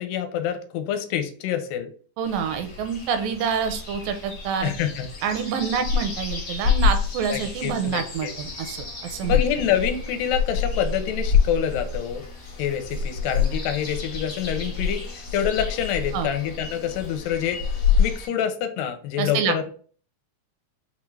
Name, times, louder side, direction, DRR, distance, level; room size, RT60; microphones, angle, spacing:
voice 1, 0.0-1.9 4.6-5.1 7.3-8.3 9.2-12.2 12.6-19.7, left 9 dB, 80° left, 8 dB, 2.2 m, -27 dB
sound 1, 2.2-18.3, left 6 dB, 60° left, 0.8 m, -27 dB
voice 2, 2.2-4.7 5.2-9.4 16.1-16.3 19.2-19.7, right 7 dB, 85° right, 8 dB, 2.2 m, -27 dB
5.7 x 2.3 x 3.2 m, 0.43 s
omnidirectional pair, 4.0 m